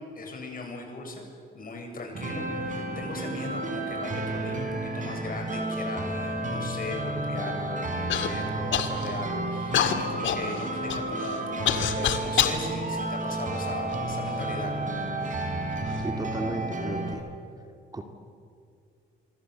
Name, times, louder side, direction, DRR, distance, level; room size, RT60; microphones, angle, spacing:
voice 1, 0.2-1.2 1.5-14.7, left 3 dB, 45° left, 2 dB, 7.3 m, -38 dB
sound 1, 2.1-17.1, right 2 dB, 40° right, 5.0 m, -31 dB
Human voice / Cough, 8.1-8.3 8.7-9.2 9.7-12.6 13.3-14.2 14.9-15.0 15.7-16.1, left 9 dB, 70° left, 2.1 m, -27 dB
voice 2, 16.0-17.3 17.9-18.0, right 2 dB, 20° right, 4 dB, 2.3 m, -34 dB
26.0 x 24.5 x 8.0 m, 2.4 s
cardioid pair, 90°, 20 cm